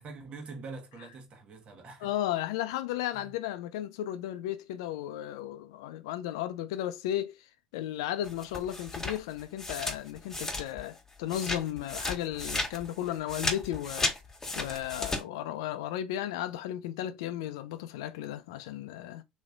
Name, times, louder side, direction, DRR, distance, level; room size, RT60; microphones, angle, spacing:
voice 1, 0.0-2.1 3.1-3.3, right 4 dB, 50° right, 1.3 m, -44 dB
voice 2, 2.0-7.5 7.7-14.1 14.6-19.2, left 12 dB, 80° left, 0.4 m, -34 dB
sound 1, 8.2-11.0 11.3-15.2, left 2 dB, 20° left, 1.3 m, -34 dB
3.1 x 3.0 x 2.5 m
hypercardioid pair, 70°, 3 cm